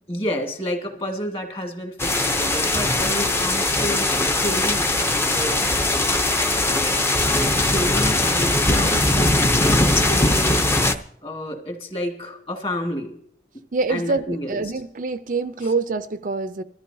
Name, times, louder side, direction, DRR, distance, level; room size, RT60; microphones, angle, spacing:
voice 1, 0.1-5.7 6.4-7.0 7.5-9.1 9.6-10.7 11.2-13.2 13.9-14.6 15.6-15.7, equal, 30° left, 1.8 m, -30 dB
sound 1, 2.0-10.9, left 2 dB, 15° left, 0.6 m, -20 dB
voice 2, 8.9-9.4 13.7-16.6, right 3 dB, 45° right, 0.5 m, -26 dB
20.5 x 13.5 x 2.7 m
head